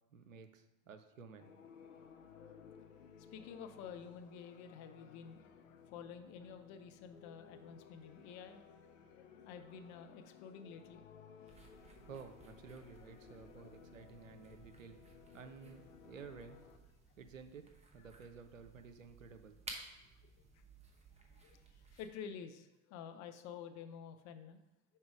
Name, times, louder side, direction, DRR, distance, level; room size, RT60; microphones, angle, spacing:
voice 1, 0.1-1.5 1.8-1.9 11.8-16.6 17.2-19.6, right 5 dB, 90° right, 8 dB, 0.6 m, -54 dB
sound 1, 1.4-16.8, left 6 dB, 80° left, 0.7 m, -59 dB
voice 2, 2.5-2.9 3.3-11.0 13.5-13.7 20.5-20.6 21.3-24.6, left 7 dB, 50° left, 8 dB, 0.7 m, -51 dB
sound 2, 11.5-22.1, right 3 dB, 15° right, 1.1 m, -57 dB
5.5 x 4.4 x 4.8 m, 0.97 s
figure-of-eight pair, 70°, 38 cm